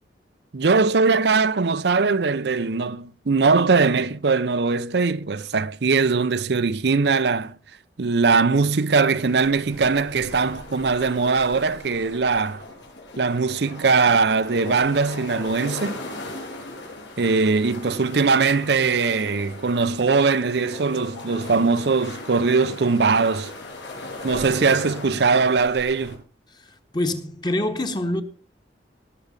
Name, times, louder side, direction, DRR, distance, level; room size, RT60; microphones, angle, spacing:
voice 1, 0.5-7.5 8.0-12.6 13.2-16.0 17.2-23.5 24.2-26.2, right 4 dB, 65° right, 0.6 m, -21 dB
sound 1, 8.9-26.2, left 2 dB, 80° left, 6.6 m, -38 dB
voice 2, 26.9-28.2, left 1 dB, 25° left, 1.4 m, -25 dB
20.0 x 6.8 x 5.2 m
head